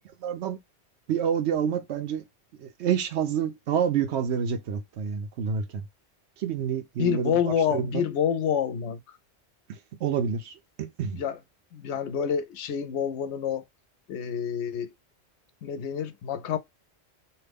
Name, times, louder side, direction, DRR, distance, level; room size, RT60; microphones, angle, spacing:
voice 1, 0.2-0.6 1.1-2.3 2.6-5.8 6.4-7.4 7.7-8.1 9.7-11.2, right 7 dB, 80° right, 0.9 m, -28 dB
voice 2, 7.0-9.2 11.1-11.4 11.7-13.6 14.1-14.9 15.6-16.6, left 8 dB, 85° left, 0.9 m, -28 dB
2.8 x 2.1 x 3.3 m
omnidirectional pair, 1.1 m